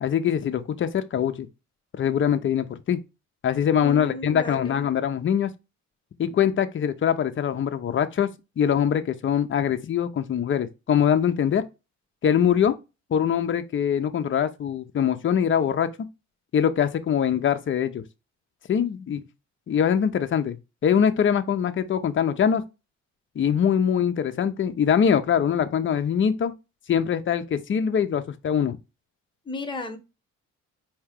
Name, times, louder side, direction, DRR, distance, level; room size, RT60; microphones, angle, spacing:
voice 1, 0.0-1.5 2.0-3.0 3.4-5.5 6.2-11.6 12.2-12.7 13.1-15.9 16.5-18.0 18.7-19.2 19.7-20.6 20.8-22.6 23.4-26.5 26.9-28.8, left 8 dB, 40° left, 0.6 m, -23 dB
voice 2, 3.8-4.8 29.4-30.0, left 2 dB, 15° left, 1.1 m, -34 dB
4.5 x 2.8 x 3.5 m
cardioid pair, 90°, 30 cm